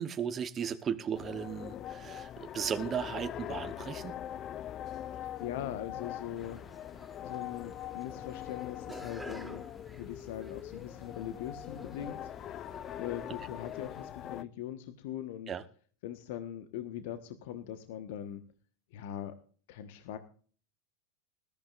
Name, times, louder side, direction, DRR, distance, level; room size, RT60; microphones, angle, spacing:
voice 1, 0.0-4.1 15.5-15.6, right 8 dB, 25° right, 1.0 m, -36 dB
sound 1, 1.1-14.4, left 11 dB, 35° left, 0.6 m, -42 dB
voice 2, 5.2-6.6 7.2-9.6 9.9-12.3 13.0-15.5 16.0-18.4 18.9-19.3 19.7-20.2, left 11 dB, 60° left, 1.3 m, -41 dB
sound 2, 6.3-14.1, equal, ahead, 3.0 m, -52 dB
20.5 x 14.0 x 2.6 m
figure-of-eight pair, 90°, 0 cm